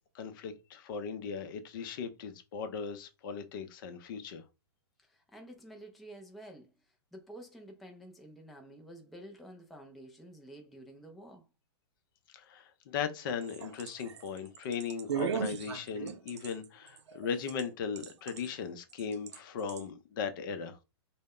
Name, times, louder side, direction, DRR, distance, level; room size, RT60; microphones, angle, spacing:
voice 1, 0.1-4.4 12.3-20.8, left 6 dB, 50° left, 0.5 m, -38 dB
voice 2, 5.0-6.7 7.1-11.5, right 1 dB, ahead, 0.4 m, -50 dB
sound 1, 13.3-17.6 18.0-18.5 19.0-19.4 19.7-19.8, right 8 dB, 85° right, 0.4 m, -37 dB
2.1 x 2.0 x 3.6 m
hypercardioid pair, 135°, 14 cm